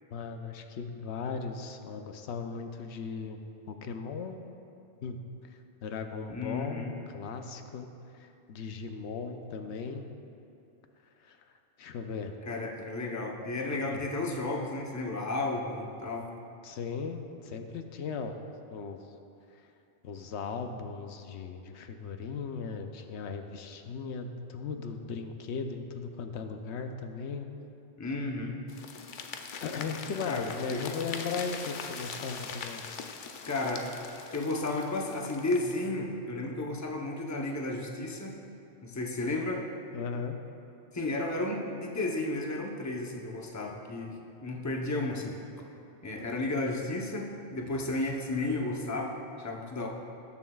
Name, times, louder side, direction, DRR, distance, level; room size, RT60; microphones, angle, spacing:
voice 1, 0.1-3.4 3.7-4.4 5.0-5.2 5.5-10.1 11.2-11.5 11.8-12.3 13.9-14.0 16.6-18.4 18.7-19.0 20.0-27.5 29.6-32.8 39.9-40.3, left 5 dB, 85° left, 6 dB, 0.9 m, -37 dB
voice 2, 6.3-6.9 12.5-16.3 28.0-28.6 30.2-31.0 33.4-33.9 34.3-38.4 38.8-39.7 40.9-45.4 46.0-49.9, left 2 dB, 20° left, 0 dB, 0.7 m, -33 dB
sound 1, 28.7-35.9, left 5 dB, 55° left, 0.7 m, -42 dB
19.0 x 7.2 x 2.3 m, 2.7 s
omnidirectional pair, 1.1 m